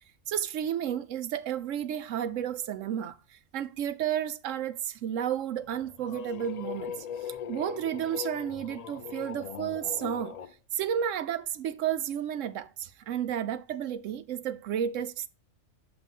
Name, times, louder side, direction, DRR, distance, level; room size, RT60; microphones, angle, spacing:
voice 1, 0.3-10.4 10.7-15.3, right 9 dB, 80° right, 1.0 m, -32 dB
sound 1, 5.6-10.5, left 8 dB, 75° left, 0.3 m, -40 dB
5.9 x 5.6 x 5.4 m
omnidirectional pair, 1.3 m